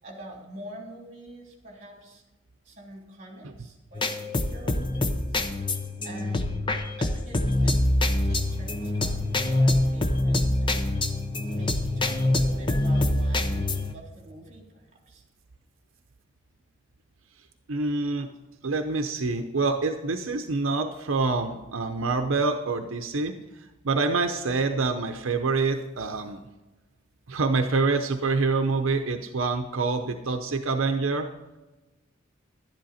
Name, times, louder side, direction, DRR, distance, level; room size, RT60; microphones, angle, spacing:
voice 1, 0.0-2.2 2.6-5.4 6.0-6.6 7.0-7.8 8.2-11.0 11.5-15.2, right 1 dB, 35° right, 0 dB, 3.2 m, -45 dB
sound 1, 3.9-13.9, left 1 dB, 25° left, 0.7 m, -25 dB
voice 2, 17.7-18.3 18.6-23.3 23.8-26.4 27.3-31.3, right 3 dB, 75° right, 6 dB, 0.7 m, -26 dB
12.0 x 10.5 x 4.2 m, 1.1 s
head